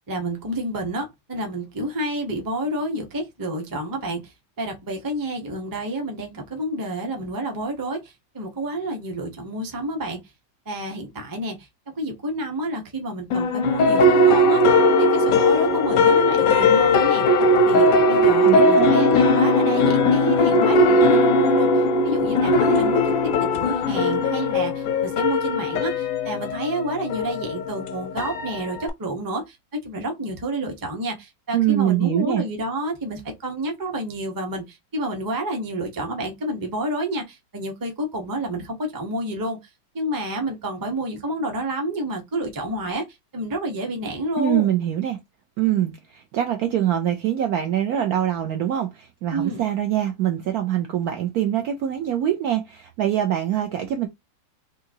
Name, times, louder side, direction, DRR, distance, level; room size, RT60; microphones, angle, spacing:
voice 1, 0.1-4.2 4.6-10.2 10.7-11.6 12.0-17.2 17.6-23.0 23.6-29.6 29.8-39.6 39.9-43.0 43.3-44.7 49.3-49.6, right 1 dB, 25° right, 0.5 m, -29 dB
sound 1, 13.3-28.9, left 1 dB, 65° left, 0.9 m, -19 dB
voice 2, 18.4-18.9 31.5-32.4 44.4-45.2 45.6-54.1, right 11 dB, 75° right, 0.9 m, -24 dB
3.7 x 2.8 x 2.6 m
omnidirectional pair, 2.1 m